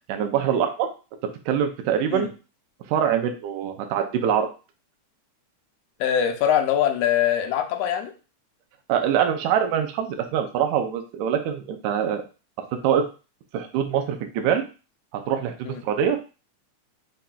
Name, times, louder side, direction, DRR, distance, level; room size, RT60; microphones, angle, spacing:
voice 1, 0.1-0.9 1.5-2.3 2.9-4.5 8.9-12.2 12.8-13.0 13.5-14.6 15.1-16.2, right 8 dB, 80° right, 5 dB, 1.9 m, -24 dB
voice 2, 6.0-8.1 15.6-15.8, left 9 dB, 80° left, 4 dB, 1.5 m, -23 dB
5.5 x 2.5 x 2.2 m, 0.33 s
omnidirectional pair, 3.4 m